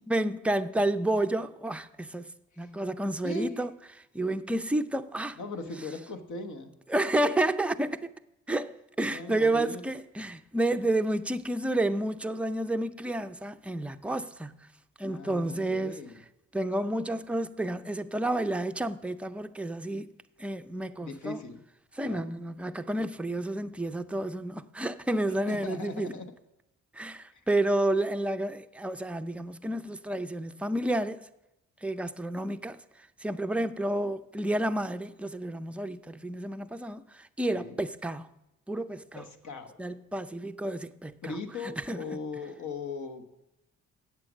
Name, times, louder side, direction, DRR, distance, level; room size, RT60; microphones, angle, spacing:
voice 1, 0.0-3.7 4.1-5.4 6.9-8.1 8.5-14.6 15.0-16.0 16.5-20.1 20.4-21.4 22.0-26.1 26.9-31.2 31.8-32.8 33.2-38.3 38.7-39.3 39.8-41.4 41.6-42.0, right 1 dB, 5° right, 0.4 m, -30 dB
voice 2, 3.2-3.6 5.4-6.7 9.0-9.8 15.1-16.2 21.0-21.7 22.0-22.2 25.5-26.3 27.3-27.4 37.5-37.8 39.1-39.8 41.2-43.4, left 3 dB, 65° left, 1.2 m, -39 dB
8.5 x 7.6 x 6.1 m
supercardioid pair, 70°, 32 cm